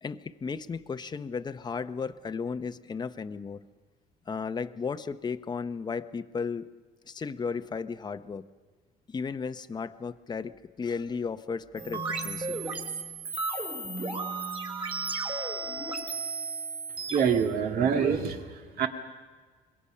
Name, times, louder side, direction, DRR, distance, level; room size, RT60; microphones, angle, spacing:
voice 1, 0.0-3.6 4.3-6.7 7.1-8.4 9.1-12.6, left 5 dB, 25° left, 10 dB, 0.8 m, -34 dB
sound 1, 11.8-18.2, right 3 dB, 35° right, 4.0 m, -34 dB
voice 2, 17.1-18.9, right 7 dB, 65° right, 4 dB, 2.1 m, -26 dB
26.0 x 21.5 x 5.7 m, 1.5 s
cardioid pair, 110°, 17 cm